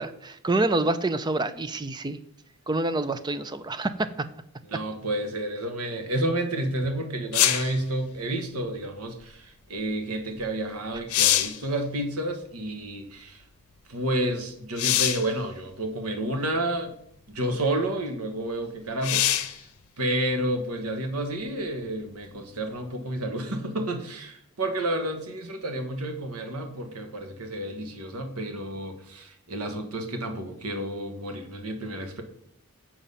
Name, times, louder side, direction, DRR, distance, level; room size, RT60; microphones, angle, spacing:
voice 1, 0.0-2.2 2.7-4.1, right 2 dB, 20° right, 12 dB, 0.4 m, -27 dB
voice 2, 4.7-13.4 13.9-16.9 17.3-19.7 20.0-32.2, right 1 dB, 85° right, 6 dB, 1.3 m, -30 dB
sound 1, 7.3-7.8 10.4-10.5 10.9-11.6 14.8-15.3 16.3-16.4 19.0-19.6 23.2-23.3, left 12 dB, 85° left, 0.7 m, -23 dB
7.4 x 5.0 x 5.4 m, 0.69 s
head